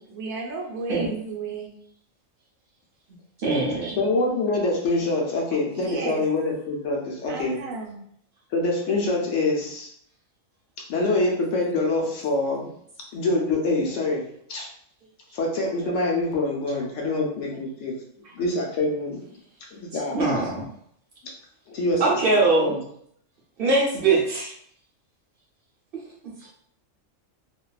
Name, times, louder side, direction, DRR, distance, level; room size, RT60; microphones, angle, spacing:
voice 1, 0.0-1.7 5.7-6.2 7.3-8.0, right 3 dB, 80° right, 0 dB, 1.0 m, -33 dB
voice 2, 3.4-4.0 17.1-17.2 20.1-20.6 22.0-22.7 23.6-24.5 26.4-26.5, right 3 dB, 55° right, -4 dB, 0.7 m, -22 dB
voice 3, 4.0-7.6 8.5-9.9 10.9-12.7 13.1-14.2 14.5-14.7 15.3-18.0 18.4-19.2 19.7-20.2 21.7-22.8, left 2 dB, 70° left, -1 dB, 0.9 m, -25 dB
2.5 x 2.2 x 2.3 m, 0.67 s
omnidirectional pair, 1.4 m